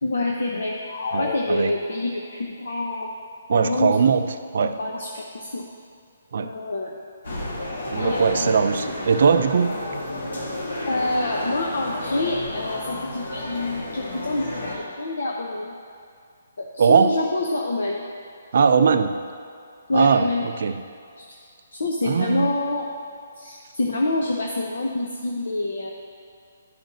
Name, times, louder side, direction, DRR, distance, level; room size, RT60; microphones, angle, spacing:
voice 1, 0.0-0.8 1.2-3.1 3.5-4.0 4.6-5.6 6.4-6.9 8.0-8.7 10.9-15.7 16.6-18.1 19.9-20.4 21.2-21.3 21.7-22.9 23.4-25.9, left 2 dB, 80° left, 0 dB, 0.7 m, -27 dB
sound 1, 0.9-2.3, left 4 dB, 40° left, 0.4 m, -32 dB
voice 2, 1.1-1.7 3.5-4.2 4.5-4.8 6.3-6.5 7.9-9.8 16.8-17.1 18.5-19.2 19.9-20.9 22.0-22.5, right 6 dB, 55° right, 9 dB, 0.4 m, -20 dB
sound 2, 7.2-14.8, left 1 dB, 65° left, 1.5 m, -31 dB
11.5 x 5.1 x 2.7 m, 2.4 s
hypercardioid pair, 170°, 0 cm